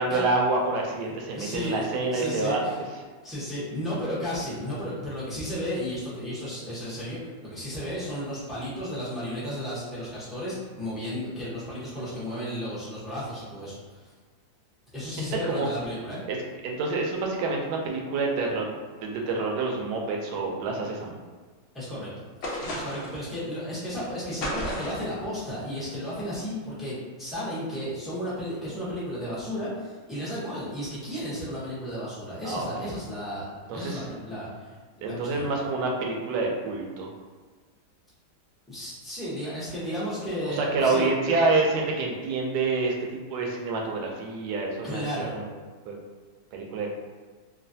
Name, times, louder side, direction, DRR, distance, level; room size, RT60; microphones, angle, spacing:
voice 1, 0.0-2.7 15.4-15.7 16.3-16.4 16.6-21.2 32.4-32.9 33.7-34.0 35.0-37.1 40.5-45.5 45.9-46.0 46.5-47.0, right 3 dB, 75° right, 0 dB, 1.1 m, -27 dB
voice 2, 1.1-2.8 3.2-14.1 14.9-16.2 21.7-22.1 22.4-35.5 38.7-41.1 44.8-45.4, equal, ahead, -11 dB, 0.4 m, -34 dB
sound 1, 22.4-23.2 24.4-25.1, left 1 dB, 75° left, 0.6 m, -33 dB
3.1 x 2.3 x 2.6 m, 1.4 s
omnidirectional pair, 1.9 m